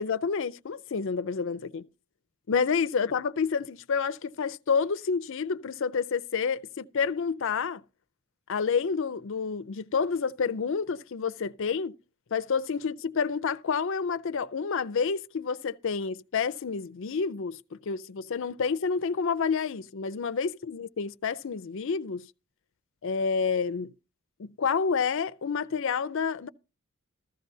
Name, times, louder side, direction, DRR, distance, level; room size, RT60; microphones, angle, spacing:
voice 1, 0.0-1.8 2.5-7.8 8.5-11.9 12.3-22.3 23.0-23.9 24.4-26.5, left 5 dB, 60° left, 0.5 m, -29 dB
15.0 x 13.0 x 2.7 m
head